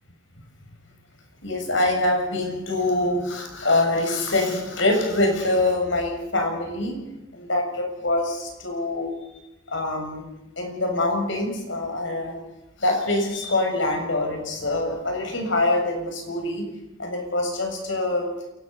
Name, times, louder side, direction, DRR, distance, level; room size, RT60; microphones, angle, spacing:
voice 1, 1.4-7.0 7.3-9.1 9.7-10.3 10.6-12.4 12.8-16.6 17.0-18.3, left 2 dB, 70° left, 3 dB, 7.3 m, -24 dB
28.0 x 19.5 x 5.7 m, 0.96 s
head